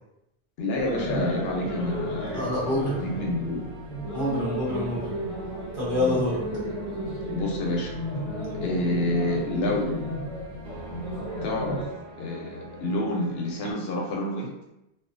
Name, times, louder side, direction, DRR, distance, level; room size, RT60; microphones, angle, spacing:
voice 1, 0.6-2.3 3.0-3.7 7.3-7.9 8.6-10.1 11.4-11.8 12.2-14.5, left 1 dB, 70° left, 0 dB, 0.8 m, -28 dB
sound 1, 0.7-11.9, right 1 dB, 35° left, 0.7 m, -33 dB
sound 2, 1.3-13.7, right 1 dB, 70° right, 0.8 m, -42 dB
voice 2, 2.3-3.0 4.1-5.1 5.7-6.4, left 1 dB, 55° right, -7 dB, 1.1 m, -26 dB
2.4 x 2.3 x 2.5 m, 0.89 s
omnidirectional pair, 1.1 m